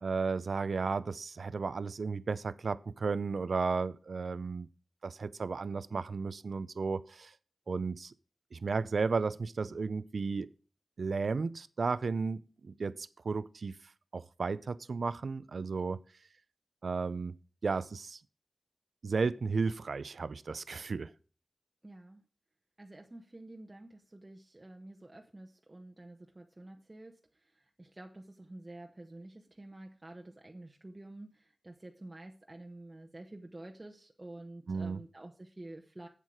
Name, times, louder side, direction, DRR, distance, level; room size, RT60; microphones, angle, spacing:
voice 1, 0.0-4.7 5.0-7.3 7.7-8.1 8.5-10.5 11.0-13.8 14.1-16.0 16.8-17.3 17.6-18.2 19.0-21.1 34.7-35.0, right 4 dB, 75° right, 0.5 m, -34 dB
voice 2, 21.8-22.2 22.8-36.1, right 1 dB, 30° right, 1.0 m, -49 dB
8.3 x 7.4 x 4.8 m
cardioid pair, 55°, 0 cm